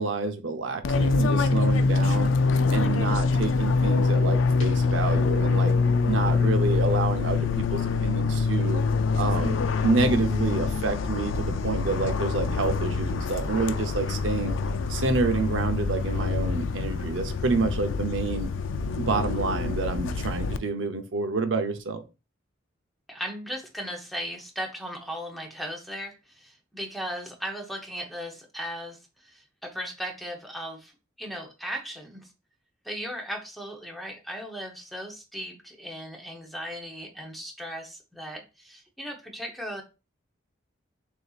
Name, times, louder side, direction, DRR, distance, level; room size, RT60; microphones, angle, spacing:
voice 1, 0.0-2.3 2.7-5.7 6.0-8.8 9.2-14.6 14.9-18.5 19.0-22.0, right 3 dB, 80° right, 6 dB, 0.7 m, -28 dB
Fixed-wing aircraft airplane, 0.8-20.6, left 4 dB, 80° left, 0.4 m, -25 dB
voice 2, 23.1-30.9 31.2-32.3 32.8-39.8, equal, ahead, 1 dB, 0.8 m, -37 dB
6.5 x 2.8 x 2.4 m, 0.28 s
head